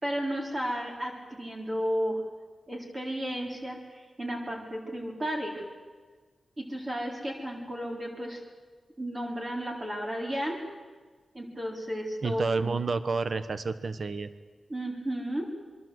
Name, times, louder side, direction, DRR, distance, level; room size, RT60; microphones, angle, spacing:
voice 1, 0.0-2.2 2.7-5.6 6.6-8.4 9.0-10.6 11.3-12.7 14.7-15.5, equal, 25° right, 0 dB, 4.1 m, -33 dB
voice 2, 12.2-14.3, right 4 dB, 45° right, 12 dB, 1.2 m, -30 dB
27.5 x 23.0 x 7.9 m, 1.5 s
wide cardioid pair, 155°, 0 cm